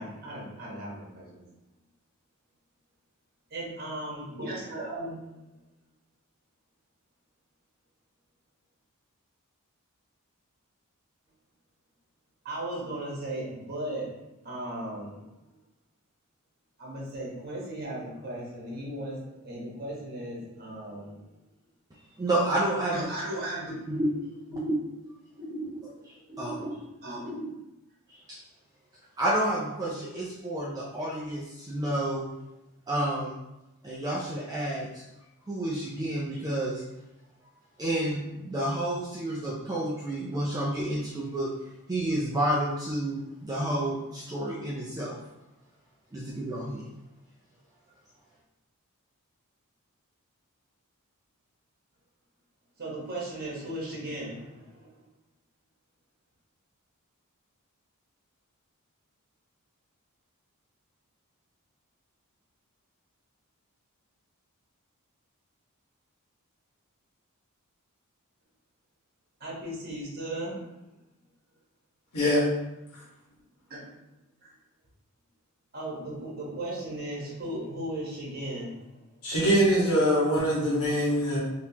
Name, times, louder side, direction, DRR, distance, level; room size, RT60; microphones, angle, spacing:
voice 1, 0.0-1.5 3.5-5.4 12.4-14.2 14.4-15.3 16.8-21.3 22.8-24.0 24.5-24.7 25.4-25.7 26.3-26.6 27.0-27.6 52.8-55.0 69.4-70.8 73.7-73.9 74.4-74.5 75.7-79.1, right 1 dB, 45° right, -4 dB, 1.2 m, -36 dB
voice 2, 22.2-23.1 23.9-24.1 26.4-26.8 28.1-28.4 29.2-32.3 32.9-33.4 33.8-35.0 35.5-36.8 37.8-41.5 41.9-45.2 46.1-46.9, right 1 dB, 15° right, -5 dB, 0.4 m, -30 dB
voice 3, 79.2-81.4, equal, 85° left, -6 dB, 1.4 m, -23 dB
3.7 x 2.9 x 2.8 m, 0.93 s
head